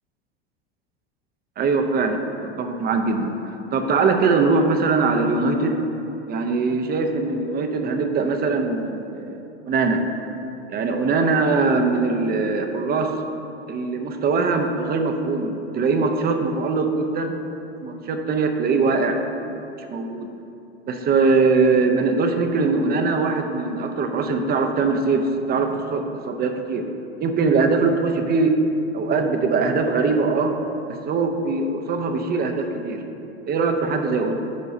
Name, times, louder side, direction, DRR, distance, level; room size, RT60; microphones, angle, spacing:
voice 1, 1.6-5.8 6.3-9.4 9.7-10.0 10.7-13.1 13.7-17.3 17.8-20.3 20.9-26.8 27.2-28.5 28.9-30.5 30.9-33.0 33.5-34.3, right 4 dB, 30° right, 5 dB, 0.6 m, -22 dB
10.0 x 5.5 x 2.7 m, 2.8 s
hypercardioid pair, 90°, 33 cm